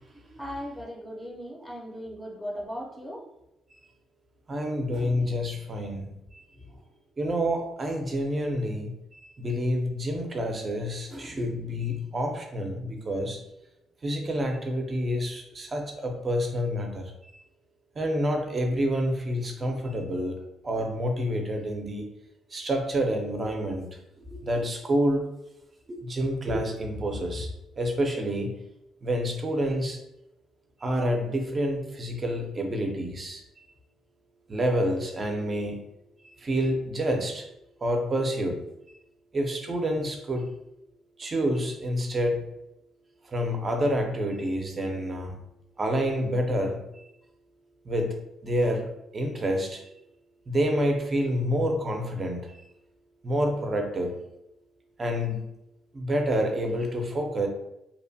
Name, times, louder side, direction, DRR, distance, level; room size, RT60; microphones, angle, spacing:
voice 1, 0.4-3.2 6.5-6.8, equal, 10° left, -3 dB, 0.6 m, -38 dB
voice 2, 4.5-6.1 6.3-6.4 7.2-13.4 14.0-17.1 18.0-20.4 20.6-22.1 22.5-23.9 24.2-25.3 25.9-27.5 27.8-28.5 29.0-30.0 30.8-33.4 34.5-35.8 36.4-37.5 37.8-38.6 39.3-40.5 41.2-42.4 43.3-45.4 45.8-46.8 47.8-49.8 50.5-52.5 53.2-54.1 55.0-55.4 55.9-57.5, equal, 35° right, 3 dB, 0.5 m, -28 dB
2.8 x 2.1 x 2.7 m, 0.83 s
cardioid pair, 90°, 0 cm